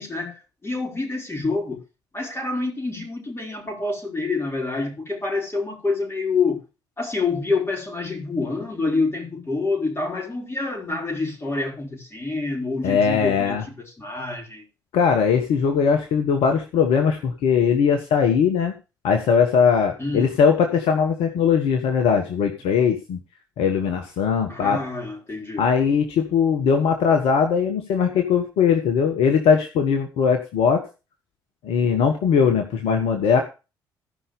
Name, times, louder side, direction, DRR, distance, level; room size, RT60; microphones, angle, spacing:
voice 1, 0.0-1.8 2.1-6.6 7.0-14.6 20.0-20.3 24.5-25.7, left 3 dB, 25° left, 5.0 m, -27 dB
voice 2, 12.8-13.6 14.9-18.7 19.0-23.2 23.6-24.8 25.6-30.9 31.6-33.4, left 6 dB, 60° left, 1.2 m, -20 dB
15.0 x 5.7 x 5.2 m
figure-of-eight pair, 45°, 11 cm